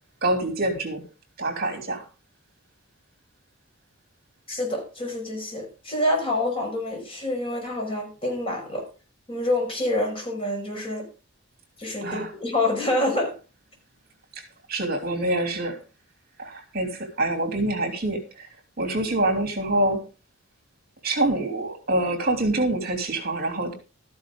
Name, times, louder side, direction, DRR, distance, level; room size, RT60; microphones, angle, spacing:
voice 1, 0.2-1.0 1.4-2.0 12.0-12.3 14.7-15.8 16.4-18.5 18.8-20.0 21.0-23.7, right 1 dB, 45° right, 5 dB, 3.2 m, -25 dB
voice 2, 4.5-8.8 9.3-11.0 11.8-13.4, left 1 dB, 25° left, 0 dB, 5.7 m, -27 dB
13.5 x 10.5 x 3.8 m, 0.34 s
head